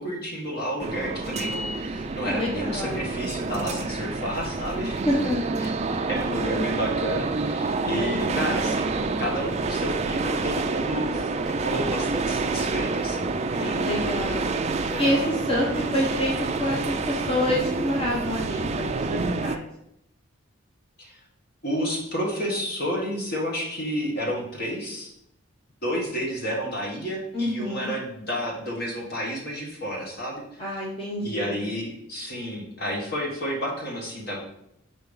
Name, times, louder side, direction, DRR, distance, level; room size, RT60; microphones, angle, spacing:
voice 1, 0.0-5.0 5.6-15.2 15.8-15.9 21.0-21.2 21.6-25.1 25.8-30.8 31.2-34.4, equal, 50° left, -2 dB, 1.9 m, -31 dB
sound 1, 0.8-19.6, right 3 dB, 30° right, 0.4 m, -28 dB
voice 2, 2.2-3.1 4.8-5.4 7.9-8.5 13.6-14.5 15.0-19.6 27.3-27.9 30.6-31.6, left 1 dB, 25° left, -5 dB, 1.1 m, -28 dB
5.7 x 4.5 x 5.4 m, 0.78 s
head